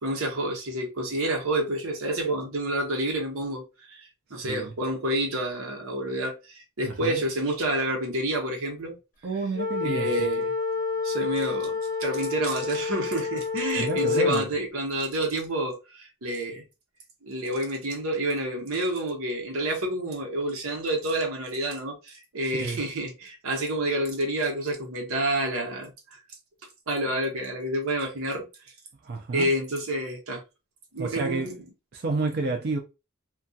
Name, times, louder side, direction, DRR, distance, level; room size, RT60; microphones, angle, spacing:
voice 1, 0.0-9.0 9.8-10.5 11.0-16.6 17.2-25.9 26.9-28.5 29.3-30.4 30.9-31.5, right 1 dB, 90° right, 0.9 m, -29 dB
voice 2, 4.4-4.7 6.8-7.2 9.2-10.1 13.8-14.5 22.4-22.8 29.0-29.5 31.0-31.5 31.9-32.8, right 3 dB, 50° right, 0.4 m, -30 dB
sound 1, 9.6-14.5, left 5 dB, 40° left, 0.6 m, -28 dB
2.3 x 2.3 x 2.6 m
head